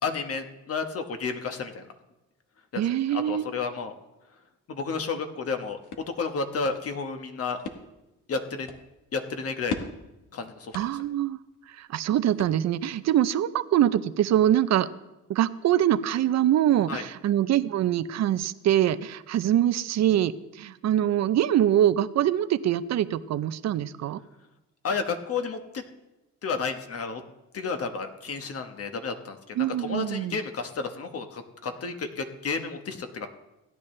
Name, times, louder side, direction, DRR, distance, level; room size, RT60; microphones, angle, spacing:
voice 1, 0.0-1.9 3.1-3.9 4.7-7.6 8.3-8.7 9.1-9.8 10.3-10.8 16.9-17.0 24.8-25.8 26.4-27.2 27.5-33.3, left 4 dB, 50° left, 6 dB, 1.3 m, -31 dB
voice 2, 2.8-3.4 10.7-11.4 11.7-14.9 15.3-24.2 29.6-30.4, right 11 dB, 60° right, 14 dB, 0.6 m, -24 dB
sound 1, 5.4-13.0, left 5 dB, 85° left, 1.3 m, -42 dB
16.5 x 10.0 x 3.3 m, 0.99 s
cardioid pair, 90°, 30 cm